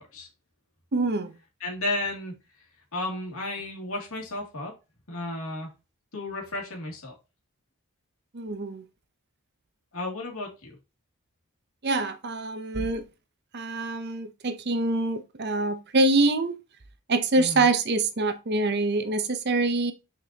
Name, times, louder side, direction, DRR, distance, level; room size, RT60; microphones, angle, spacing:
voice 1, 0.9-1.4 8.3-8.8 11.8-13.1 13.5-16.6 17.1-19.9, right 2 dB, 50° right, 0.8 m, -25 dB
voice 2, 1.6-2.3 2.9-4.7 5.1-5.7 6.1-7.1 9.9-10.7 17.3-17.7, left 2 dB, 70° left, 2.6 m, -33 dB
6.6 x 5.1 x 2.9 m
head